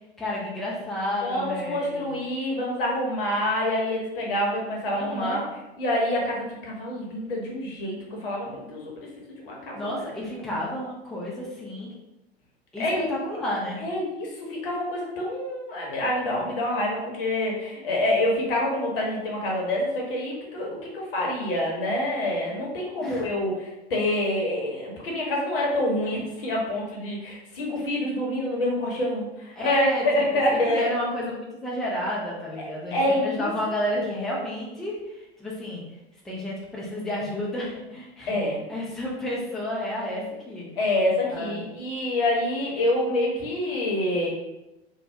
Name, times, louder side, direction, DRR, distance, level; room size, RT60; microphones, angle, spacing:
voice 1, 0.2-2.1 4.9-5.4 9.7-11.9 12.7-13.8 23.0-23.3 29.6-30.0 30.5-35.8 36.2-38.3 38.7-40.7 41.3-41.7, left 1 dB, ahead, -5 dB, 0.4 m, -31 dB
voice 2, 1.2-5.4 5.8-8.9 9.4-10.1 12.8-13.1 13.8-30.9 32.6-32.7 32.9-33.5 33.9-34.3 38.3-38.6 40.8-44.3, left 1 dB, 55° left, -2 dB, 1.0 m, -27 dB
2.7 x 2.1 x 3.3 m, 0.95 s
figure-of-eight pair, 85°, 33 cm